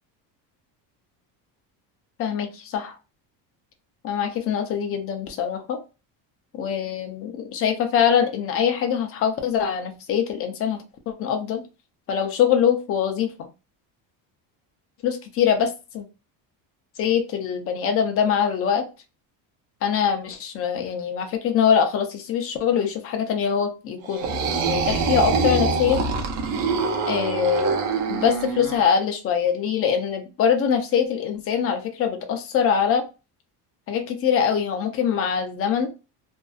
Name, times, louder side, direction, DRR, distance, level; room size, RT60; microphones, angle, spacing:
voice 1, 2.2-2.9 4.0-5.8 6.5-11.6 12.1-13.3 15.0-16.0 17.0-18.9 19.8-24.4 24.7-26.0 27.1-27.8 28.1-33.0 33.9-35.9, left 8 dB, 35° left, 0.5 m, -23 dB
sound 1, 24.1-28.9, right 4 dB, 80° right, 0.8 m, -24 dB
2.6 x 2.3 x 2.3 m
cardioid pair, 160°, 42 cm